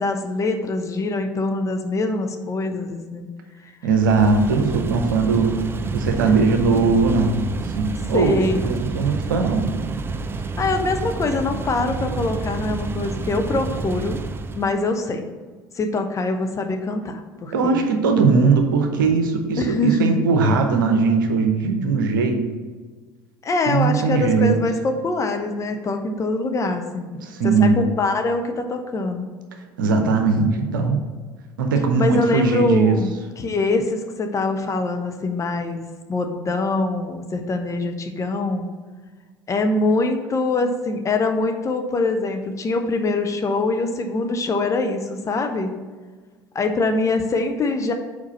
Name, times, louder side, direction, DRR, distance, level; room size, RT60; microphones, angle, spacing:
voice 1, 0.0-3.3 6.3-6.4 8.1-8.6 10.6-14.2 14.5-15.2 15.7-17.8 19.6-20.1 23.4-27.1 27.4-29.3 32.0-35.8 36.1-38.7 39.5-45.7 46.5-47.9, left 3 dB, 30° left, 5 dB, 0.8 m, -23 dB
voice 2, 3.8-5.5 5.9-9.7 17.5-22.4 23.7-24.6 27.2-27.9 29.8-31.0 31.6-32.9, right 4 dB, 75° right, 5 dB, 0.8 m, -19 dB
sound 1, 3.9-14.8, right 4 dB, 20° right, 0.4 m, -29 dB
4.8 x 4.5 x 5.7 m, 1.4 s
figure-of-eight pair, 65°, 11 cm